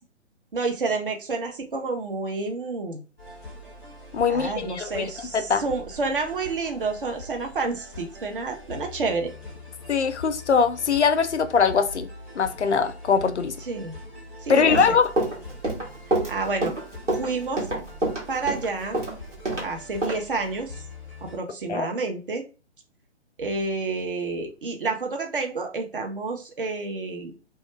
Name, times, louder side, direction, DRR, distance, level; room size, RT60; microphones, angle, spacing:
voice 1, 0.5-3.0 4.3-9.3 13.6-14.0 14.4-15.0 16.1-16.7 17.2-17.7 18.3-19.0 19.6-20.7 21.2-22.4 23.4-27.3, right 3 dB, 50° right, 0.6 m, -29 dB
sound 1, 3.2-21.4, left 2 dB, 5° left, 0.5 m, -43 dB
voice 2, 4.1-5.0 5.3-5.6 9.9-12.1 12.4-13.6 14.5-15.1 21.7-21.9, left 5 dB, 70° left, 0.5 m, -22 dB
Run, 14.5-19.7 20.0-20.2, right 1 dB, 85° right, 1.2 m, -26 dB
2.2 x 2.1 x 2.9 m
figure-of-eight pair, 135°, 36 cm